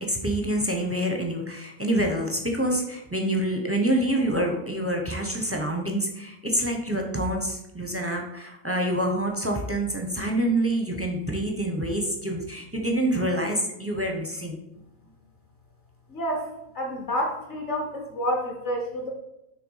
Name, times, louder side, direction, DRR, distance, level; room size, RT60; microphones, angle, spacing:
voice 1, 0.0-14.6, right 1 dB, 15° right, 2 dB, 0.4 m, -27 dB
voice 2, 16.1-16.5 16.7-19.1, equal, 50° left, 2 dB, 1.2 m, -29 dB
6.6 x 3.4 x 5.5 m, 0.88 s
omnidirectional pair, 1.6 m